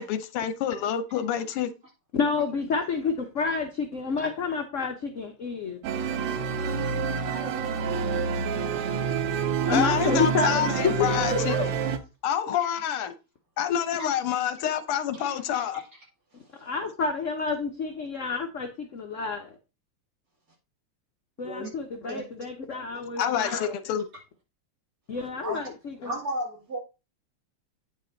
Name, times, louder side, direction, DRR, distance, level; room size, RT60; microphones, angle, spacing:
voice 1, 0.0-1.7 9.7-11.6 12.2-13.1 13.6-15.8 23.2-24.0, left 9 dB, 85° left, 1.7 m, -27 dB
voice 2, 2.1-5.8 7.2-8.0 9.7-11.7 16.6-19.6 21.4-23.8 25.1-26.1, left 5 dB, 55° left, 0.8 m, -29 dB
sound 1, 5.8-12.0, right 6 dB, 85° right, 1.8 m, -28 dB
voice 3, 14.0-14.4 15.1-15.9 16.3-16.7 21.4-21.7 22.1-22.2 23.4-23.6 25.4-25.6 26.0-26.8, right 1 dB, 40° right, 2.8 m, -36 dB
8.8 x 5.4 x 3.8 m
omnidirectional pair, 2.4 m